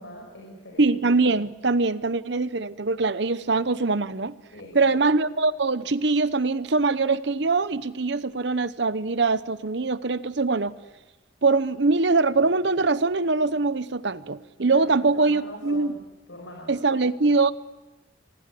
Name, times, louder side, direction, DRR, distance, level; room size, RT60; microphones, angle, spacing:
voice 1, 0.0-1.0 4.5-5.0 14.7-16.0 16.3-16.9, left 1 dB, 75° left, 0 dB, 5.6 m, -42 dB
voice 2, 0.8-4.4 4.7-10.7 11.4-15.9 16.7-17.5, right 3 dB, 60° right, 15 dB, 0.9 m, -23 dB
26.5 x 17.5 x 8.5 m, 1.1 s
head